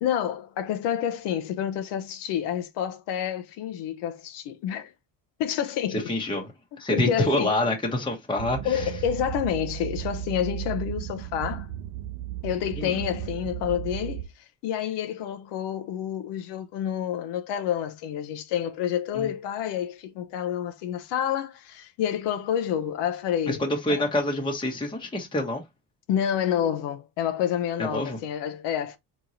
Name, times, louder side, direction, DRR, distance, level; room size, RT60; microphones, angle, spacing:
voice 1, 0.0-4.9 5.4-6.1 6.9-7.6 8.6-11.7 12.4-23.6 23.9-24.0 26.1-29.0, left 9 dB, 70° left, 0.7 m, -29 dB
voice 2, 6.1-6.5 6.8-8.9 12.8-12.9 19.2-19.3 23.5-25.6 27.8-28.2, left 1 dB, 10° left, 0.9 m, -26 dB
sound 1, 8.4-14.2, right 13 dB, 60° right, 0.5 m, -35 dB
3.6 x 3.1 x 2.6 m
supercardioid pair, 85°, 42 cm